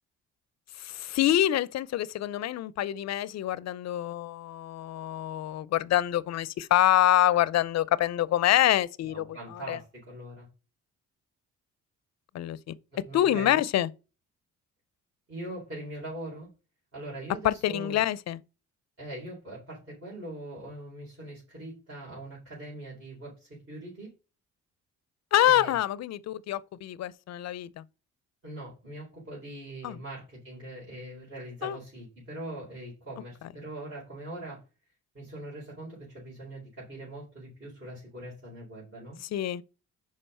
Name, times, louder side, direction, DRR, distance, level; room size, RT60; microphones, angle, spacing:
voice 1, 0.8-9.8 12.3-12.8 13.1-13.9 17.4-18.4 25.3-27.8 29.8-30.0 31.6-31.8 39.2-39.6, left 12 dB, 60° left, 0.5 m, -26 dB
voice 2, 9.1-10.5 12.9-13.6 15.3-16.5 16.9-18.0 19.0-24.1 25.4-25.7 28.4-34.6 35.1-39.2, right 1 dB, 45° right, 4.2 m, -42 dB
5.5 x 4.9 x 5.4 m
cardioid pair, 90°, 30 cm